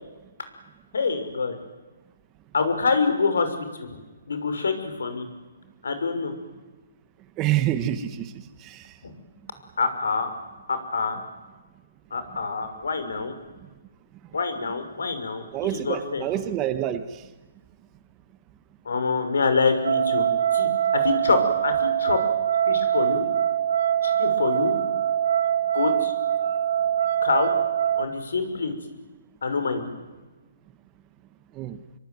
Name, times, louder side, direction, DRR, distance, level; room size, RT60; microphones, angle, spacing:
voice 1, 0.9-1.6 2.5-3.5 3.8-4.0 4.3-5.3 5.8-6.3 9.0-9.1 9.8-10.3 10.7-11.2 12.1-13.3 14.3-16.2 18.9-20.2 20.5-22.2 22.7-23.2 24.0-24.8 25.7-26.1 27.2-27.5 28.0-28.7 29.4-29.8, left 4 dB, 80° left, 9 dB, 6.1 m, -26 dB
voice 2, 7.4-8.9 15.5-17.3 31.5-31.8, right 12 dB, 20° right, 12 dB, 1.3 m, -27 dB
sound 1, 19.8-28.1, right 10 dB, 55° right, 1.9 m, -23 dB
27.0 x 23.0 x 9.5 m, 1.2 s
hypercardioid pair, 155°, 0 cm